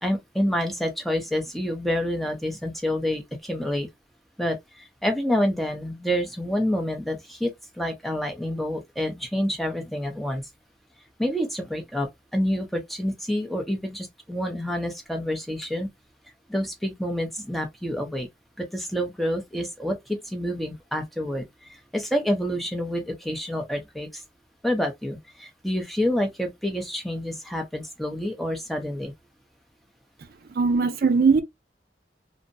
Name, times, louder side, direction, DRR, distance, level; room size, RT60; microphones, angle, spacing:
voice 1, 0.0-3.9 4.4-10.4 11.2-15.9 16.5-18.3 18.6-24.2 24.6-29.1, equal, ahead, 0.5 m, -28 dB
voice 2, 30.2-31.4, right 4 dB, 60° right, 0.4 m, -21 dB
2.6 x 2.0 x 2.5 m
head